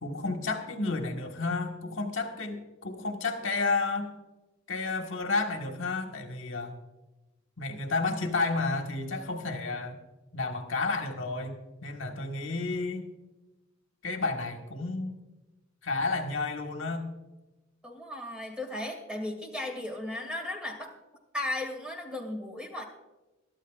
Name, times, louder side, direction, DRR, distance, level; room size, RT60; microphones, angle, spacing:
voice 1, 0.0-4.1 4.7-6.8 7.6-10.0 10.3-11.6 11.8-13.1 14.0-15.2 15.8-17.1, left 3 dB, 70° left, 3 dB, 1.5 m, -31 dB
voice 2, 17.8-20.9 21.3-22.8, left 1 dB, 5° right, 1 dB, 2.2 m, -36 dB
22.5 x 12.5 x 2.5 m, 1.1 s
head